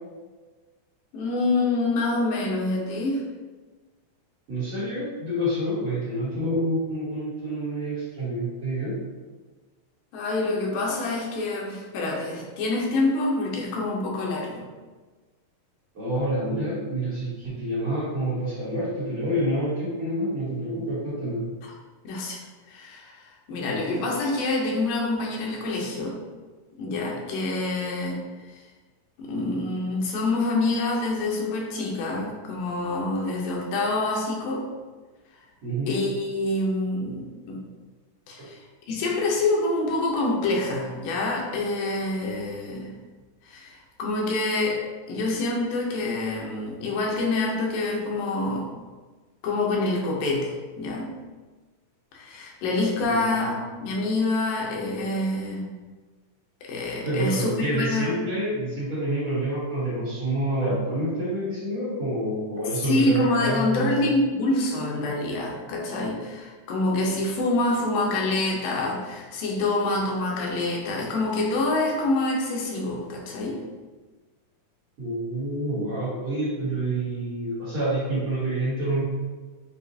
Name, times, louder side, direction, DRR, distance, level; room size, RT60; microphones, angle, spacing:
voice 1, 1.1-3.2 10.1-14.6 22.0-22.4 22.7-26.2 26.8-28.2 29.2-34.7 35.9-37.6 38.3-38.6 38.9-43.0 43.5-44.8 45.1-48.7 49.4-51.1 52.1-55.7 56.6-58.1 62.9-73.6, left 2 dB, 85° left, -1 dB, 2.5 m, -26 dB
voice 2, 4.5-9.0 15.9-21.4 35.6-35.9 38.4-38.5 53.0-53.5 57.0-64.1 75.0-79.0, right 1 dB, 55° right, -11 dB, 1.7 m, -28 dB
6.9 x 2.3 x 2.7 m, 1.3 s
omnidirectional pair, 3.8 m